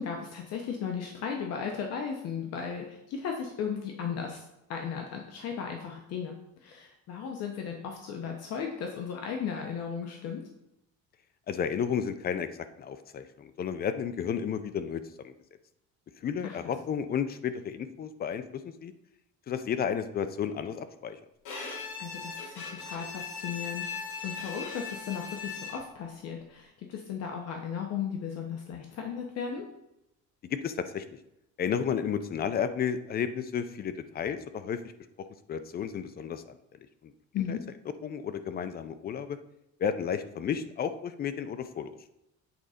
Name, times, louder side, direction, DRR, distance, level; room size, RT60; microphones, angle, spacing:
voice 1, 0.0-6.3 6.6-10.4 16.4-16.6 22.0-23.9 24.2-29.7 37.3-37.6, left 7 dB, 55° left, 2 dB, 0.9 m, -36 dB
voice 2, 11.5-15.3 16.2-18.9 19.5-21.2 30.4-31.2 31.6-34.8 35.5-37.1 37.5-37.6 38.0-39.4 39.8-42.0, left 7 dB, 30° left, 11 dB, 0.4 m, -32 dB
Bowed string instrument, 21.4-26.0, left 5 dB, 80° left, 2.3 m, -39 dB
8.0 x 4.0 x 4.9 m, 0.86 s
cardioid pair, 170°, 30 cm